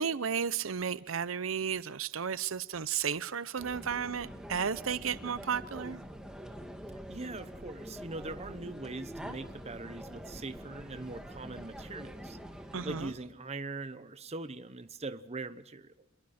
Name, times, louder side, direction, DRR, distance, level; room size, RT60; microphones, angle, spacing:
voice 1, 0.0-6.0 12.7-13.1, right 7 dB, 85° right, 0.7 m, -33 dB
sound 1, 3.6-13.1, equal, 5° right, 2.1 m, -45 dB
voice 2, 7.1-12.4 12.8-16.1, right 3 dB, 30° right, 1.0 m, -42 dB
28.5 x 22.5 x 4.3 m
head